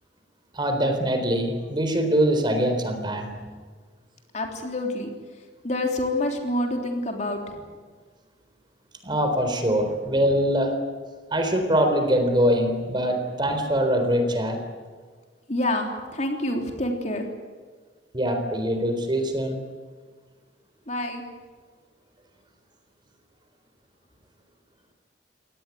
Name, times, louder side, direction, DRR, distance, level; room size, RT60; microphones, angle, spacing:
voice 1, 0.5-3.3 9.0-10.8 11.3-14.6 18.1-19.6, equal, 25° right, 6 dB, 3.9 m, -23 dB
voice 2, 4.3-7.6 15.5-17.3 20.9-21.2, left 1 dB, 40° left, 3 dB, 3.4 m, -28 dB
25.0 x 18.5 x 9.3 m, 1.5 s
head